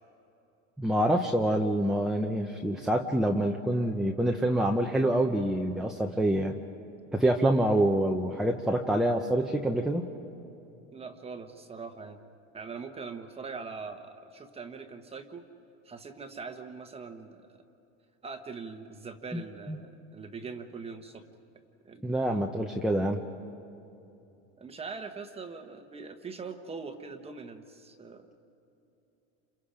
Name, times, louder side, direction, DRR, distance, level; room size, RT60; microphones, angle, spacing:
voice 1, 0.8-6.5 7.1-10.0 19.3-19.4 19.7-19.8 22.0-23.2, right 1 dB, ahead, 1 dB, 0.8 m, -26 dB
voice 2, 10.9-12.2 12.5-15.4 15.8-17.6 18.2-21.3 21.8-22.1 24.6-28.3, right 4 dB, 15° right, 6 dB, 1.1 m, -42 dB
29.5 x 27.5 x 5.1 m, 2.9 s
supercardioid pair, 145°, 35 cm